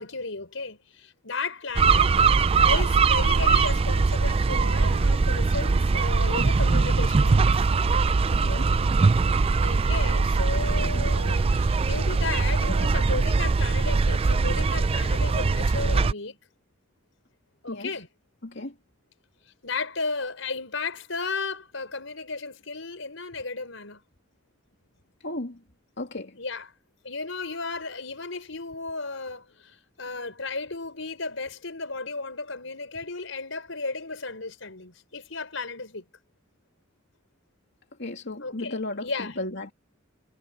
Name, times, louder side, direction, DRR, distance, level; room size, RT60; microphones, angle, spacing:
voice 1, 0.0-2.2 2.6-7.7 9.6-16.4 17.6-18.1 19.6-24.0 26.3-26.7 27.0-36.0 38.4-39.4, left 3 dB, 80° left, 5.1 m, -34 dB
sound 1, 1.8-16.1, right 4 dB, 30° right, 0.4 m, -22 dB
voice 2, 8.3-8.7 17.7-18.0 18.4-18.7 25.2-25.6 26.0-26.4 38.0-39.7, left 2 dB, 60° left, 2.8 m, -34 dB
head